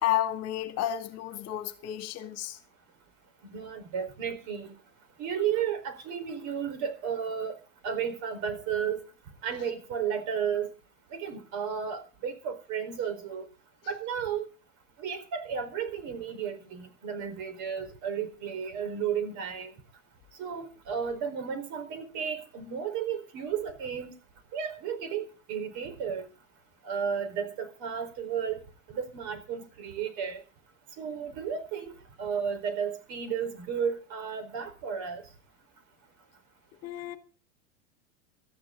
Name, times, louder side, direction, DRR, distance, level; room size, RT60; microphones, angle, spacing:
voice 1, 0.0-2.6 36.8-37.2, left 12 dB, 40° left, 2.3 m, -31 dB
voice 2, 3.5-4.7 5.2-7.6 7.8-9.0 9.4-10.7 11.1-13.5 13.9-14.5 15.0-19.7 20.4-24.1 24.5-26.3 26.8-28.6 28.9-30.4 31.0-31.9 32.2-35.2, right 7 dB, 50° right, 4.4 m, -33 dB
19.0 x 13.5 x 3.9 m
hypercardioid pair, 110°, 38 cm